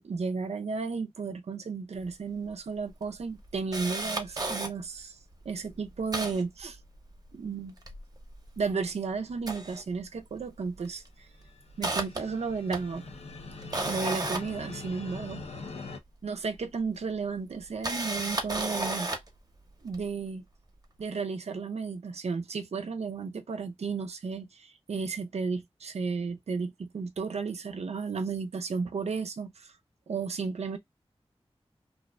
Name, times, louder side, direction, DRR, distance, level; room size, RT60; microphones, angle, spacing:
voice 1, 0.0-5.1 5.5-6.8 7.3-7.8 8.6-11.0 11.8-13.1 13.9-15.4 16.2-19.1 19.8-20.4 21.0-29.7 30.1-30.8, right 5 dB, 85° right, 0.4 m, -33 dB
Camera, 2.1-2.2 2.5-2.6 3.0-4.7 5.3-5.4 5.7-7.3 7.6-8.9 9.3-10.4 10.7-11.0 11.4-15.4 16.5-16.6 17.6-19.4 19.9-20.1, right 2 dB, 35° right, 0.6 m, -34 dB
sound 1, 11.5-16.0, left 3 dB, 75° left, 0.5 m, -42 dB
2.5 x 2.1 x 2.3 m
wide cardioid pair, 55°, 11 cm